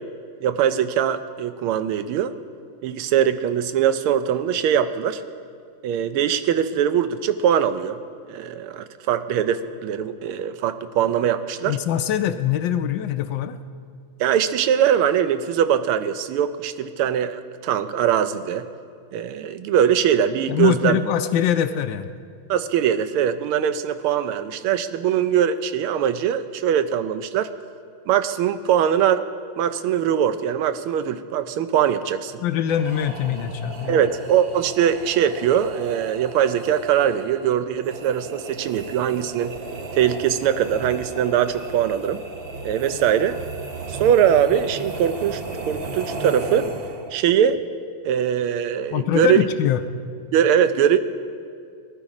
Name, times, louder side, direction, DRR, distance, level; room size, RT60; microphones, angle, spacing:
voice 1, 0.4-2.3 2.8-5.2 5.8-8.0 8.3-11.8 14.2-18.7 19.1-21.0 22.5-27.5 28.1-29.2 29.6-32.4 33.9-39.5 39.9-42.2 42.6-43.4 43.9-45.4 45.7-46.7 47.1-47.6 48.0-49.4 50.3-51.0, right 9 dB, 90° right, 11 dB, 1.6 m, -21 dB
voice 2, 11.7-13.6 20.5-22.1 32.4-34.0 48.9-49.8, left 10 dB, 75° left, 9 dB, 1.2 m, -23 dB
sound 1, 32.7-47.3, right 3 dB, 60° right, 0.6 m, -35 dB
19.5 x 11.5 x 4.9 m, 2.3 s
omnidirectional pair, 2.3 m